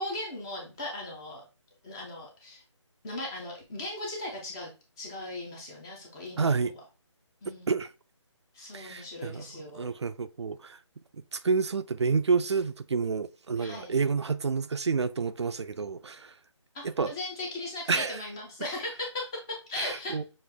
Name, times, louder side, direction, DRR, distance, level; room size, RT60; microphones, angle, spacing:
voice 1, 0.0-1.4 1.8-2.6 3.0-4.7 5.0-6.6 7.4-7.7 8.5-9.9 13.6-13.9 16.7-20.2, left 2 dB, 10° left, 0.5 m, -38 dB
voice 2, 6.4-6.7 7.7-7.9 8.7-9.4 9.7-10.8 11.3-16.3 16.8-17.1 17.9-18.2 19.8-20.2, right 5 dB, 60° right, 0.5 m, -29 dB
6.4 x 2.5 x 3.3 m
figure-of-eight pair, 165°, 16 cm